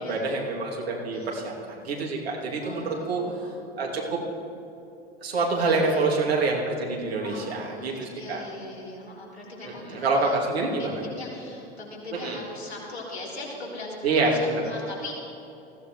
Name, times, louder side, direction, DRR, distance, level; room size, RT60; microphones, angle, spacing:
voice 1, 0.0-3.2 3.8-4.2 5.2-8.4 9.6-11.0 12.1-12.4 14.0-14.6, right 3 dB, 75° right, -2 dB, 2.8 m, -26 dB
voice 2, 1.1-1.5 2.6-3.6 3.9-4.2 5.5-6.0 7.2-10.4 10.7-15.1, left 2 dB, 90° left, -6 dB, 3.8 m, -40 dB
20.0 x 16.0 x 3.2 m, 2.9 s
figure-of-eight pair, 85°, 31 cm